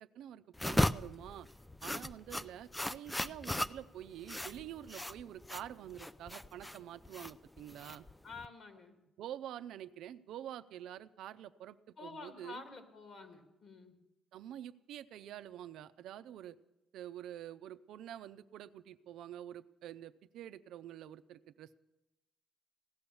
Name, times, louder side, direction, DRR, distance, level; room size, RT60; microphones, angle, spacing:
voice 1, 0.0-1.5 1.8-8.1 9.2-12.6 14.3-16.6 16.9-21.8, right 11 dB, 85° right, 12 dB, 0.5 m, -47 dB
sound 1, 0.5-8.5, left 1 dB, 10° left, 0.4 m, -37 dB
voice 2, 8.2-9.0 12.0-14.0, left 4 dB, 55° left, 6 dB, 2.6 m, -49 dB
16.5 x 11.5 x 7.0 m, 0.98 s
cardioid pair, 90°, 0 cm